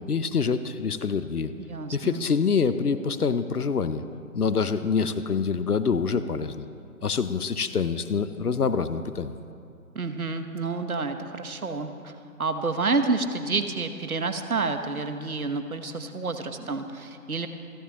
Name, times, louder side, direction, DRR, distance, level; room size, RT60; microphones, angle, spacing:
voice 1, 0.1-1.5 1.9-4.0 4.3-6.7 7.0-9.3, left 5 dB, 75° left, 12 dB, 0.8 m, -26 dB
voice 2, 1.6-2.2 9.9-12.1 12.4-17.5, right 3 dB, 65° right, 8 dB, 1.2 m, -29 dB
28.0 x 10.5 x 3.0 m, 2.5 s
figure-of-eight pair, 150°, 45 cm